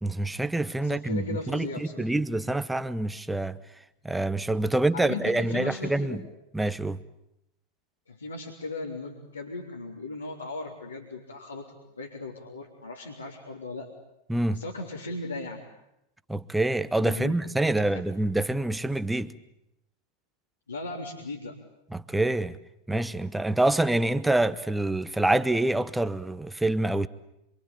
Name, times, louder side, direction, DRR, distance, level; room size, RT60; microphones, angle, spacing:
voice 1, 0.0-3.6 4.0-6.2 6.5-7.0 14.3-14.6 16.3-19.3 21.9-22.6 22.9-27.1, right 2 dB, 5° right, 1.0 m, -26 dB
voice 2, 0.8-2.1 4.9-6.2 8.1-13.9 14.5-15.6 17.0-17.3 17.8-18.0 20.7-21.6, left 3 dB, 80° left, 3.6 m, -37 dB
27.0 x 25.0 x 8.7 m
figure-of-eight pair, 90°, 0 cm